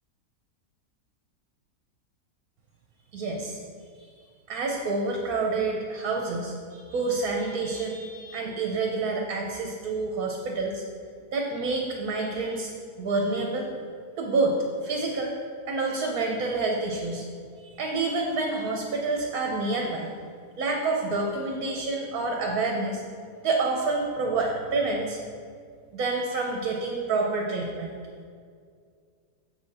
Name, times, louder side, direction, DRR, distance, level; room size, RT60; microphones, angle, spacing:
voice 1, 3.1-3.6 4.5-10.8 11.3-12.7 13.0-13.7 14.2-14.6 14.8-15.4 15.7-17.2 17.6-20.1 20.6-23.0 23.4-25.2 25.9-27.9, right 3 dB, 65° right, 1 dB, 1.3 m, -28 dB
7.6 x 6.7 x 4.2 m, 2.2 s
omnidirectional pair, 1.7 m